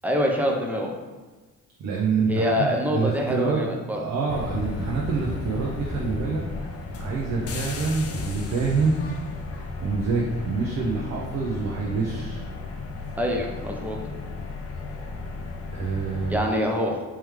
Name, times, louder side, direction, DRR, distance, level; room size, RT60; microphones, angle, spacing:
voice 1, 0.0-0.9 2.3-4.0 13.2-14.0 16.3-17.0, equal, 5° right, 0 dB, 0.6 m, -25 dB
voice 2, 1.8-3.6 3.9-6.4 7.0-9.0 9.8-12.4 15.7-16.5, right 4 dB, 60° right, -3 dB, 0.7 m, -26 dB
sound 1, 4.3-16.4, left 3 dB, 50° left, 0.5 m, -34 dB
3.4 x 3.2 x 3.2 m, 1.3 s
cardioid pair, 90°, 30 cm